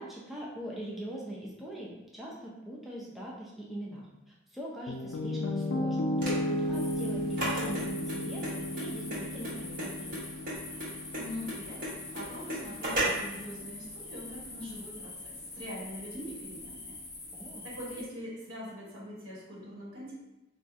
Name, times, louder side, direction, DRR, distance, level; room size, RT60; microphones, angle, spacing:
voice 1, 0.0-10.2 17.3-17.7, right 1 dB, ahead, -5 dB, 0.4 m, -42 dB
Piano, 4.9-13.0, left 1 dB, 80° left, 0.4 m, -34 dB
sound 1, 6.2-13.4, right 1 dB, 45° right, 1.0 m, -35 dB
sound 2, 6.7-18.0, left 2 dB, 15° left, 0.8 m, -45 dB
voice 2, 11.2-11.8 12.1-17.0 17.6-20.1, equal, 85° right, -5 dB, 1.2 m, -42 dB
4.4 x 2.3 x 2.6 m, 0.96 s
head